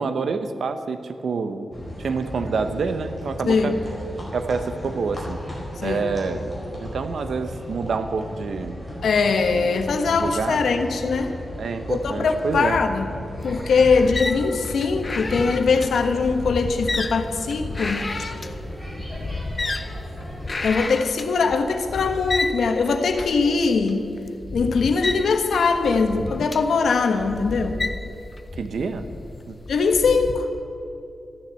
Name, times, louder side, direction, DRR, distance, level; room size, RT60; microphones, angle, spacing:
voice 1, 0.0-1.7 2.0-3.7 4.3-5.4 5.8-6.5 6.8-8.8 9.5-9.7 10.1-10.6 11.6-12.8 21.4-21.5 28.6-29.0 29.5-29.6, right 4 dB, 75° right, 9 dB, 0.9 m, -27 dB
sound 1, 1.7-20.5, equal, ahead, 4.5 m, -35 dB
voice 2, 3.4-3.8 5.8-6.0 9.0-11.3 11.9-13.1 13.4-18.1 20.6-24.1 24.5-27.8 29.7-30.5, left 4 dB, 85° left, 6 dB, 1.3 m, -21 dB
sound 2, 13.4-30.4, left 3 dB, 35° left, 0.6 m, -32 dB
14.0 x 10.0 x 8.1 m, 2.6 s
wide cardioid pair, 125°, 0 cm